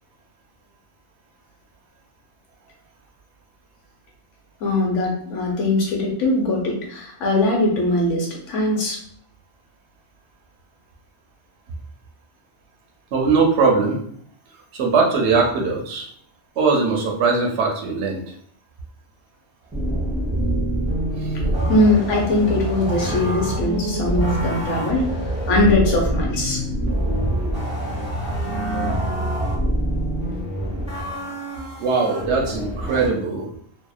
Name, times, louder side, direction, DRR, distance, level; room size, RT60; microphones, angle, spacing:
voice 1, 4.6-9.0 21.7-26.6, left 2 dB, 85° left, -1 dB, 1.1 m, -21 dB
voice 2, 13.1-14.0 14.7-16.1 16.6-18.2 21.2-21.3 31.8-33.5, right 4 dB, 75° right, 1 dB, 0.9 m, -20 dB
sound 1, 19.7-33.1, right 1 dB, 5° right, 0.6 m, -25 dB
2.8 x 2.0 x 2.3 m, 0.63 s
omnidirectional pair, 1.2 m